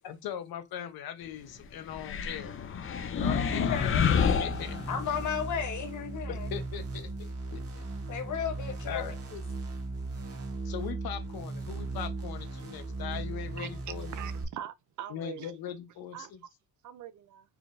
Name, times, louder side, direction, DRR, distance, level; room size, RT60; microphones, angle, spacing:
voice 1, 0.0-2.6 3.1-4.8 6.3-7.8 8.9-9.2 10.6-14.2 15.1-16.4, left 9 dB, 90° left, 1.0 m, -40 dB
sound 1, 1.9-5.3, left 7 dB, 35° left, 0.5 m, -29 dB
sound 2, 3.2-14.4, right 2 dB, 40° right, 1.2 m, -37 dB
voice 2, 3.7-4.1 4.9-6.5 7.5-7.6 8.1-9.4, left 8 dB, 55° left, 1.1 m, -34 dB
voice 3, 14.2-15.5 16.1-16.3 16.8-17.4, right 10 dB, 55° right, 0.5 m, -42 dB
4.4 x 3.8 x 2.6 m
cardioid pair, 165°, 35 cm